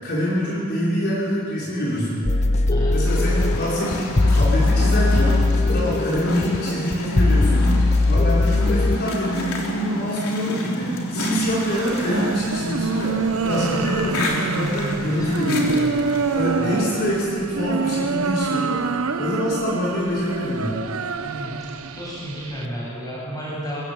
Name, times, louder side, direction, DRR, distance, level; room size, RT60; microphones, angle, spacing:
voice 1, 0.0-2.3 2.9-5.4 5.7-7.6 8.1-13.2 13.4-15.8 16.3-18.8 19.2-20.8, equal, 50° left, -7 dB, 5.2 m, -25 dB
sound 1, 2.2-9.0, left 2 dB, 30° left, 0.7 m, -19 dB
sound 2, 3.1-16.6, equal, 80° left, 3.3 m, -30 dB
sound 3, 11.4-22.7, right 4 dB, 70° right, 0.8 m, -26 dB
voice 2, 15.1-15.6 16.6-16.9 21.2-21.6 21.9-23.8, equal, 15° left, -5 dB, 7.3 m, -32 dB
22.5 x 14.5 x 8.6 m, 2.2 s
head